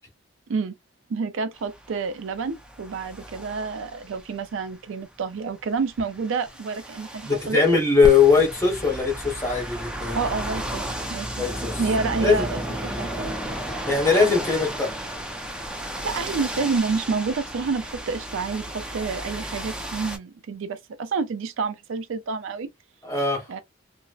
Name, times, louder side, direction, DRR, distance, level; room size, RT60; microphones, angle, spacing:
voice 1, 1.1-7.6 10.1-11.5 11.8-13.5 15.8-22.7 23.5-23.6, right 4 dB, 80° right, 0.4 m, -29 dB
sound 1, 1.6-4.5 5.7-20.2, equal, 5° right, 0.4 m, -33 dB
voice 2, 7.2-10.2 11.4-11.8 12.2-12.4 13.9-14.9 23.0-23.5, left 5 dB, 15° left, 1.0 m, -20 dB
2.6 x 2.0 x 2.3 m
head